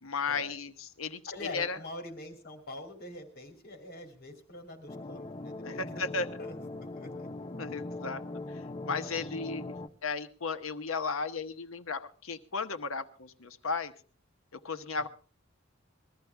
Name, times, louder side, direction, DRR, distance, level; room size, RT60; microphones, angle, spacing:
voice 1, 0.0-1.8 5.6-6.3 7.6-9.8 10.0-13.9 14.5-15.1, left 4 dB, 80° left, 9 dB, 1.1 m, -35 dB
voice 2, 1.3-6.6 6.9-7.3, left 2 dB, 50° left, 5 dB, 2.9 m, -44 dB
sound 1, 4.9-9.9, left 2 dB, 30° left, 0.9 m, -40 dB
21.0 x 13.5 x 3.4 m, 0.38 s
head